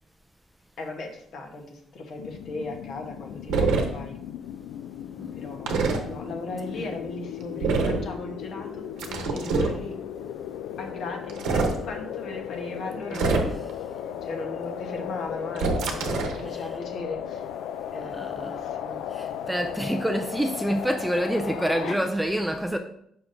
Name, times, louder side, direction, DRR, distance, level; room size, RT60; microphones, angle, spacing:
voice 1, 0.8-4.2 5.3-10.0 10.8-13.6 14.0-16.0 16.3-17.5 17.9-19.0 21.7-22.0, left 2 dB, 50° left, 1.0 m, -37 dB
sound 1, 2.2-22.0, left 9 dB, 85° left, 0.3 m, -36 dB
sound 2, 3.5-3.9 5.7-6.0 7.6-8.0 9.0-9.8 11.3-11.8 13.1-13.7 15.6-16.4, right 4 dB, 80° right, 0.9 m, -24 dB
voice 2, 13.1-13.5 16.4-16.6 18.0-18.6 19.1-22.8, right 1 dB, 5° right, 0.3 m, -27 dB
6.9 x 5.7 x 2.6 m
cardioid pair, 165°, 0 cm